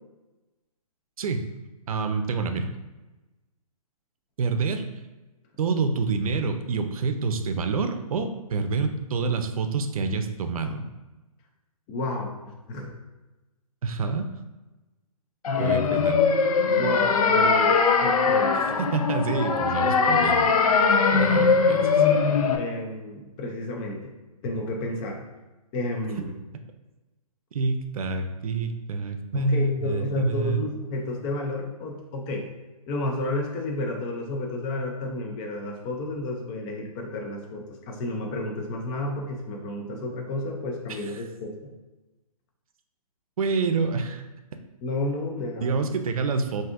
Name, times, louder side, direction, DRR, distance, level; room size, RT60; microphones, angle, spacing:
voice 1, 1.9-2.7 4.4-4.8 5.6-10.9 13.8-14.3 15.6-16.2 18.8-20.5 21.1-22.1 27.5-30.6 40.9-41.0 43.4-44.2 45.6-46.6, right 4 dB, 65° right, 7 dB, 0.6 m, -27 dB
voice 2, 11.9-12.3 12.7-13.0 15.6-16.0 16.7-18.8 22.5-24.1 24.4-25.2 25.7-26.3 29.3-32.5 32.9-41.6 44.8-45.7, left 2 dB, 15° left, 2 dB, 0.3 m, -31 dB
sound 1, 15.4-22.6, left 5 dB, 70° left, 0.6 m, -21 dB
5.9 x 2.7 x 2.5 m, 1.1 s
hypercardioid pair, 155°, 19 cm